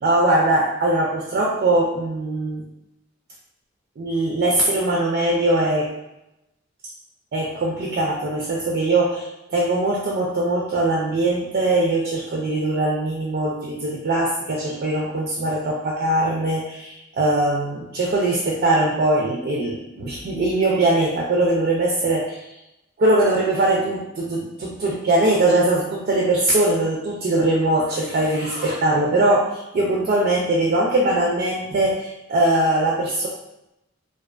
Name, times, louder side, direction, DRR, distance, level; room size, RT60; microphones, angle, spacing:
voice 1, 0.0-2.6 4.0-5.9 7.3-22.5 23.0-33.3, right 2 dB, 45° right, -2 dB, 0.3 m, -21 dB
2.4 x 2.2 x 2.4 m, 0.90 s
head